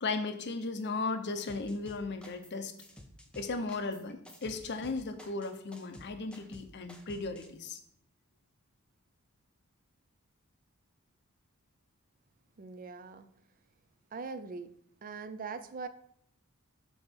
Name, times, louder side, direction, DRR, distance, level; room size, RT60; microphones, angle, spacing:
voice 1, 0.0-2.7 3.3-7.8, left 3 dB, 50° left, 8 dB, 0.7 m, -36 dB
sound 1, 1.5-2.5 2.8-7.5, equal, 5° left, 0.6 m, -52 dB
voice 2, 12.6-13.3 14.1-14.7 15.0-15.9, right 4 dB, 40° right, 12 dB, 0.5 m, -41 dB
6.2 x 3.9 x 5.3 m, 0.70 s
head